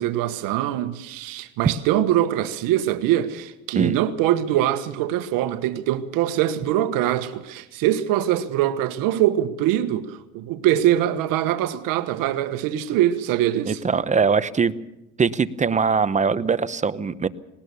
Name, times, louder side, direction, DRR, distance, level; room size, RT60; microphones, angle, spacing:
voice 1, 0.0-13.8, right 12 dB, 75° right, 1.4 m, -23 dB
voice 2, 13.7-14.7 15.2-17.3, right 5 dB, 20° right, 0.9 m, -21 dB
19.5 x 19.5 x 7.0 m
cardioid pair, 110°, 33 cm